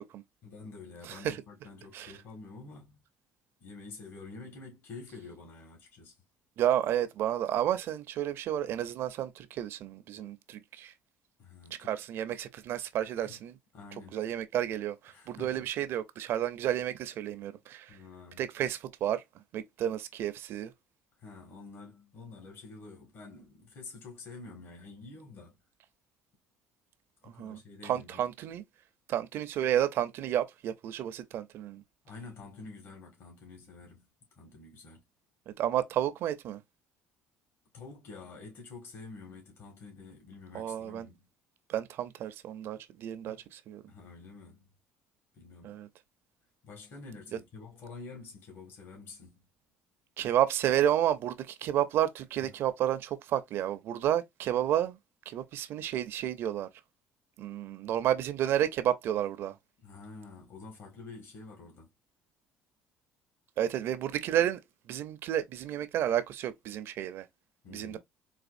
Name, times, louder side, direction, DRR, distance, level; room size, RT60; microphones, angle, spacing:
voice 1, 0.4-3.0 3.6-6.2 11.4-11.9 13.2-13.4 13.7-14.3 15.1-15.6 17.9-18.5 21.2-25.6 27.2-28.3 32.0-34.1 34.4-35.0 37.7-41.3 43.2-43.4 43.9-44.7 45.3-45.8 46.6-49.4 52.4-52.5 59.8-61.9 67.6-68.0, left 4 dB, 60° left, 1.7 m, -48 dB
voice 2, 1.0-1.4 1.9-2.1 6.6-10.9 11.8-13.5 14.1-18.0 18.4-19.2 19.5-20.7 27.3-28.6 29.1-31.8 35.5-36.6 40.5-41.1 41.7-43.8 45.6-45.9 50.2-55.0 55.3-56.7 57.4-59.5 63.6-64.6 64.9-67.3 67.7-68.0, right 11 dB, 65° right, 0.5 m, -31 dB
4.1 x 2.3 x 2.5 m
cardioid pair, 100°, 4 cm